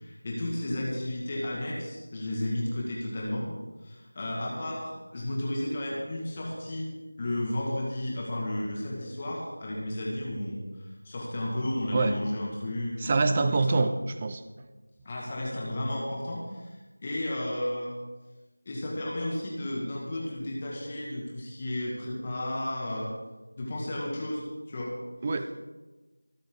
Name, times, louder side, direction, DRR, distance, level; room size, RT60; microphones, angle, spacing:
voice 1, 0.0-3.5 3.8-6.9 7.2-13.8 15.0-17.9 18.7-23.1 23.6-25.0 25.3-25.5, left 1 dB, 20° left, -3 dB, 2.1 m, -33 dB
voice 2, 13.0-14.4 25.2-25.4, right 3 dB, 20° right, 9 dB, 0.6 m, -25 dB
24.0 x 9.3 x 3.9 m, 1.2 s
figure-of-eight pair, 170°, 0 cm